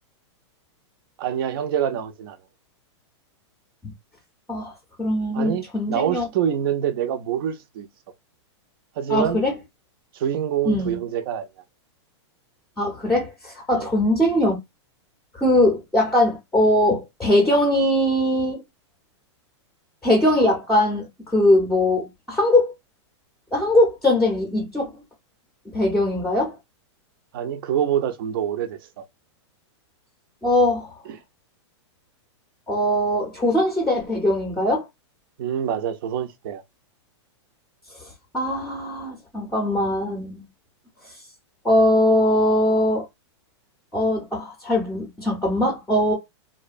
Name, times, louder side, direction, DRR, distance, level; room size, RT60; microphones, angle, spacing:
voice 1, 1.2-2.4 5.3-7.9 9.0-9.4 10.1-11.5 13.7-13.9 27.3-29.0 31.1-31.2 35.4-36.6, right 9 dB, 50° right, 0.4 m, -26 dB
voice 2, 5.0-6.3 9.1-9.5 10.6-11.0 12.8-14.6 15.4-18.6 20.0-21.1 21.3-22.7 23.5-24.9 25.7-26.5 30.4-30.9 32.7-34.8 38.3-40.4 41.6-43.0 43.9-46.1, left 1 dB, 5° left, 0.6 m, -21 dB
2.7 x 2.1 x 2.4 m
supercardioid pair, 155°, 15 cm